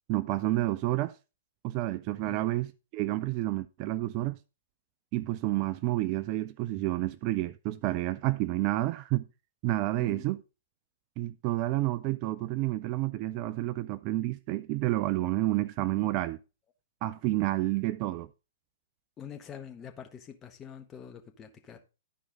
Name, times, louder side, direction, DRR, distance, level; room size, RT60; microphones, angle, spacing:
voice 1, 0.1-1.1 1.6-4.4 5.1-9.2 9.6-10.4 11.2-16.4 17.0-18.3, right 16 dB, 35° right, 0.4 m, -29 dB
voice 2, 19.2-21.8, left 8 dB, 20° left, 1.4 m, -45 dB
12.0 x 4.6 x 3.7 m
figure-of-eight pair, 115°, 0 cm